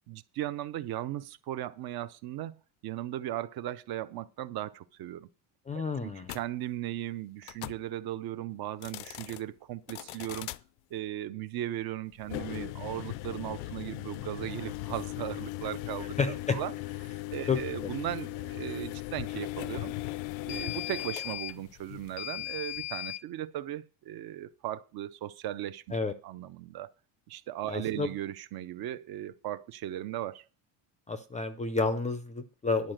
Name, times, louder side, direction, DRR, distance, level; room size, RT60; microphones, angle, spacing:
voice 1, 0.1-2.6 2.8-5.3 5.7-10.5 10.9-16.7 17.0-19.9 20.5-25.8 26.2-26.9 27.3-30.5, right 13 dB, 50° right, 0.7 m, -37 dB
voice 2, 5.7-6.3 16.2-16.6 17.5-17.9 25.9-26.1 27.7-28.1 31.1-32.9, left 4 dB, 15° left, 0.4 m, -30 dB
sound 1, 6.2-6.4 7.4-7.8 8.7-9.4 9.9-10.6 12.2-23.2, left 17 dB, 90° left, 0.6 m, -38 dB
10.5 x 4.9 x 7.8 m
cardioid pair, 155°, 48 cm